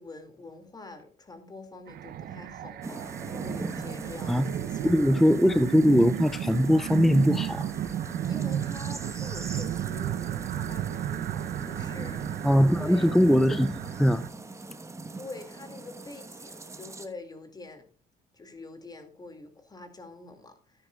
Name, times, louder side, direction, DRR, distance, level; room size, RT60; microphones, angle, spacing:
voice 1, 0.0-4.9 8.3-12.5 12.8-13.2 15.1-17.9 18.3-20.9, left 3 dB, 25° left, 2.3 m, -45 dB
sound 1, 1.9-14.3, right 11 dB, 65° right, 0.7 m, -33 dB
sound 2, 2.6-11.6, right 6 dB, 40° right, 2.8 m, -57 dB
sound 3, 2.8-17.1, right 3 dB, 15° right, 1.2 m, -42 dB
voice 2, 4.8-7.7 12.4-14.2, equal, ahead, 0.4 m, -21 dB
13.5 x 9.7 x 2.3 m
cardioid pair, 110°, 17 cm